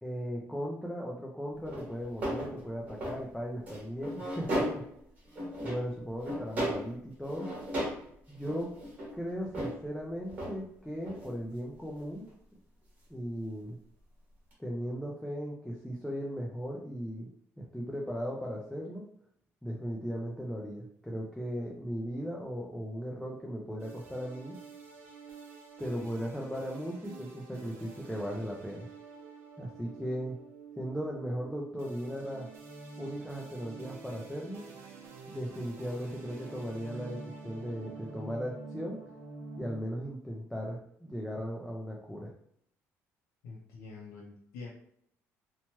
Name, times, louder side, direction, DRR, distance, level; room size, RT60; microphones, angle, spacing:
voice 1, 0.0-4.8 5.6-7.5 8.3-8.7 9.1-12.3 13.1-13.8 14.6-17.3 17.6-19.1 19.6-24.6 25.8-28.9 29.6-30.4 30.8-32.5 33.0-34.6 35.3-39.0 39.6-42.3, equal, ahead, -3 dB, 0.3 m, -37 dB
sound 1, 1.7-3.2 3.7-5.0 5.3-5.9 6.2-6.9 7.3-8.1 8.3-9.8 10.3-10.6 11.0-11.4 12.0-12.1 14.5-14.6, equal, 30° right, 1.0 m, -35 dB
sound 2, 23.8-39.8, right 4 dB, 55° right, 0.6 m, -48 dB
voice 2, 43.4-44.7, left 4 dB, 90° left, -4 dB, 0.6 m, -46 dB
2.9 x 2.2 x 2.9 m, 0.69 s
cardioid pair, 170°, 5 cm